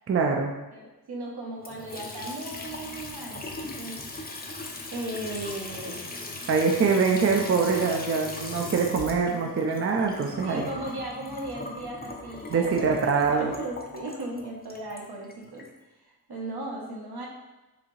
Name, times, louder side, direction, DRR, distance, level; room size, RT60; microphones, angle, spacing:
voice 1, 0.1-0.5 6.5-10.6 12.5-13.5, right 5 dB, 40° right, 2 dB, 0.4 m, -24 dB
voice 2, 0.7-4.0 4.9-6.0 10.4-15.6 16.0-17.3, right 1 dB, 75° right, -2 dB, 0.9 m, -37 dB
Water tap faucet / Sink (filling or washing) / Trickle dribble, 1.6-15.7, left 2 dB, 25° left, 0.4 m, -39 dB
4.9 x 2.7 x 3.1 m, 1.1 s
wide cardioid pair, 100°, 39 cm